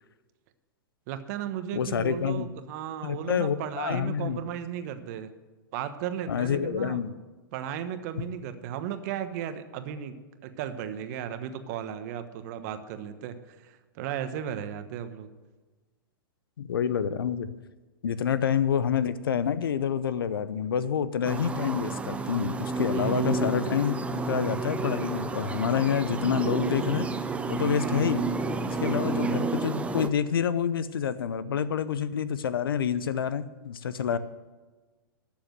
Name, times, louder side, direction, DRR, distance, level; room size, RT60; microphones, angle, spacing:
voice 1, 1.1-5.3 5.7-7.0 7.5-10.2 10.4-15.3 22.9-24.0 34.1-34.2, right 9 dB, 50° right, 10 dB, 1.2 m, -35 dB
voice 2, 1.7-2.5 3.0-4.4 6.3-7.1 16.6-17.5 18.0-27.1 27.5-28.2 28.7-34.2, left 8 dB, 75° left, 15 dB, 0.8 m, -28 dB
sound 1, 21.2-30.1, right 4 dB, 10° right, 0.6 m, -30 dB
13.0 x 7.1 x 7.8 m, 1.3 s
hypercardioid pair, 120°, 12 cm